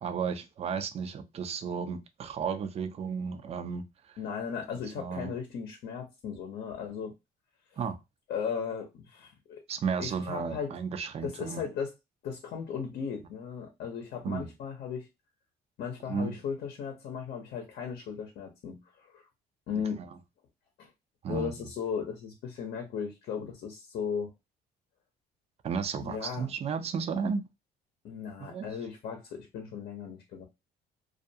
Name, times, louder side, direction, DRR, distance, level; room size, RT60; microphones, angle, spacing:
voice 1, 0.0-4.2 4.7-5.3 7.8-8.0 9.7-11.6 14.2-14.5 16.1-16.3 20.0-20.1 21.2-21.5 25.6-27.4 28.4-28.7, right 6 dB, 40° right, 0.4 m, -33 dB
voice 2, 4.2-7.1 8.3-9.6 10.0-10.8 11.2-11.9 12.2-15.1 15.8-19.3 19.7-20.0 20.8-20.9 21.3-24.3 26.0-26.5 28.0-30.4, left 7 dB, 65° left, 0.7 m, -36 dB
2.4 x 2.2 x 2.6 m
cardioid pair, 110°, 17 cm